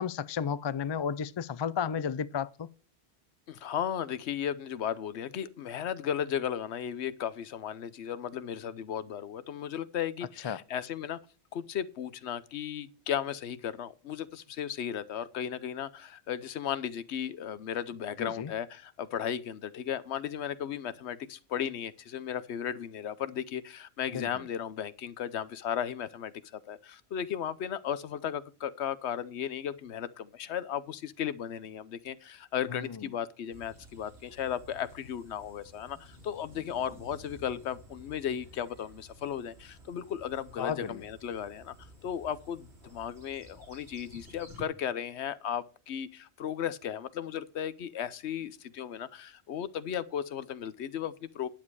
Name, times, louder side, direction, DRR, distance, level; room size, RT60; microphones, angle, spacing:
voice 1, 0.0-2.7 10.4-10.6 18.2-18.5 24.1-24.4 32.7-33.1 40.6-41.0, left 7 dB, 45° left, 0.3 m, -33 dB
voice 2, 3.5-11.2 11.5-51.5, left 9 dB, 85° left, 1.0 m, -35 dB
sound 1, 33.5-44.6, equal, 80° right, 2.8 m, -53 dB
10.5 x 7.4 x 4.7 m
omnidirectional pair, 1.1 m